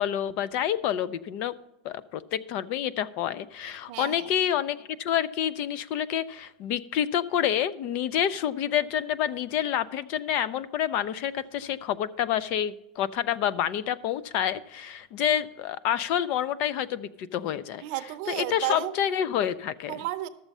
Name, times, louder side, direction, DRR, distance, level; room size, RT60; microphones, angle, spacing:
voice 1, 0.0-1.5 1.8-17.8 18.3-20.0, left 10 dB, 35° left, 18 dB, 0.3 m, -28 dB
voice 2, 3.9-4.3 17.8-18.9 19.9-20.3, right 16 dB, 40° right, 9 dB, 0.7 m, -32 dB
12.5 x 7.1 x 5.3 m, 0.93 s
supercardioid pair, 170°, 4 cm